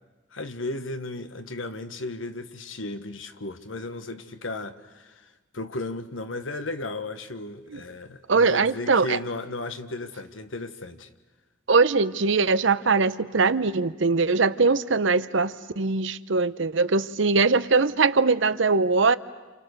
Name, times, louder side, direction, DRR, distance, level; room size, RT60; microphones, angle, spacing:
voice 1, 0.3-5.2 5.5-11.1, left 2 dB, 75° left, 9 dB, 1.4 m, -35 dB
voice 2, 8.3-9.2 11.7-19.2, right 4 dB, 70° right, 14 dB, 0.8 m, -21 dB
29.0 x 29.0 x 6.6 m, 1.2 s
head